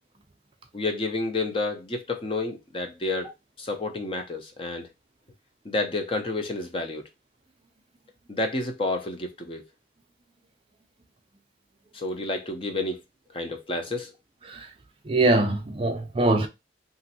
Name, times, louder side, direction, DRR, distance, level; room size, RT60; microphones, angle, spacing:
voice 1, 0.7-3.3 3.6-4.9 5.6-7.0 8.3-9.6 11.9-13.0 13.3-14.1, left 2 dB, 30° left, 0.5 m, -30 dB
voice 2, 15.1-16.5, right 2 dB, 30° right, 0.4 m, -23 dB
3.0 x 2.5 x 2.7 m
head